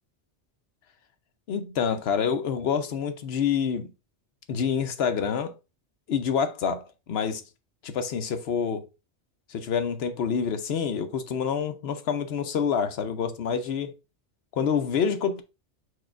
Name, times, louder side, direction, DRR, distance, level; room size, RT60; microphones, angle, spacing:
voice 1, 1.5-3.9 4.5-5.5 6.1-7.4 7.8-8.9 9.5-13.9 14.5-15.4, left 7 dB, 65° left, 0.9 m, -27 dB
4.7 x 2.4 x 4.3 m
omnidirectional pair, 1.2 m